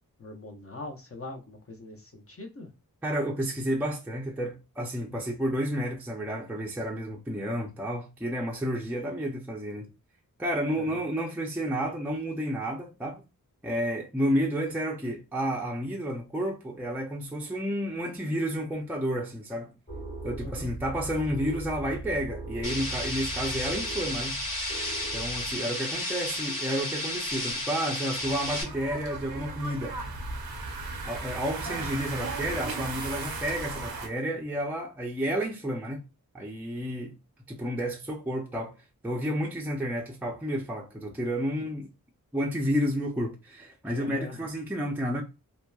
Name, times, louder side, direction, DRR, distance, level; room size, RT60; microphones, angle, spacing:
voice 1, 0.2-2.7 10.8-11.0 20.4-20.7 43.9-44.4, left 2 dB, 40° left, 0.7 m, -42 dB
voice 2, 3.0-9.9 10.4-13.2 13.6-19.7 20.2-24.4 25.1-30.0 31.1-36.0 36.3-37.2 37.5-38.8 39.0-41.9 42.3-45.2, equal, 5° right, 0.5 m, -31 dB
sound 1, 19.9-25.6, right 3 dB, 15° left, 1.2 m, -39 dB
sound 2, 22.6-28.6, left 1 dB, 65° left, 1.5 m, -32 dB
sound 3, 28.2-34.1, right 3 dB, 90° right, 0.7 m, -36 dB
2.8 x 2.1 x 2.2 m
wide cardioid pair, 60°, 36 cm